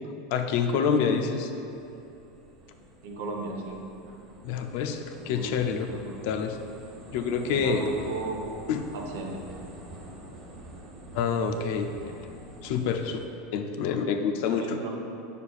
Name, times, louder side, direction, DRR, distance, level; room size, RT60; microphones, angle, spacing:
voice 1, 0.3-1.5 4.4-5.9 6.2-6.6 7.1-7.9 8.7-8.8 11.1-11.9 12.6-13.2 13.5-14.8, left 6 dB, 65° left, 6 dB, 0.5 m, -27 dB
sound 1, 1.7-13.3, right 1 dB, 40° right, 1.2 m, -47 dB
voice 2, 3.0-3.8 5.2-5.6 5.9-6.2 7.5-8.4 8.9-9.4 14.4-14.9, right 3 dB, 75° right, 1 dB, 1.1 m, -36 dB
8.3 x 6.7 x 2.4 m, 2.7 s
supercardioid pair, 115°, 0 cm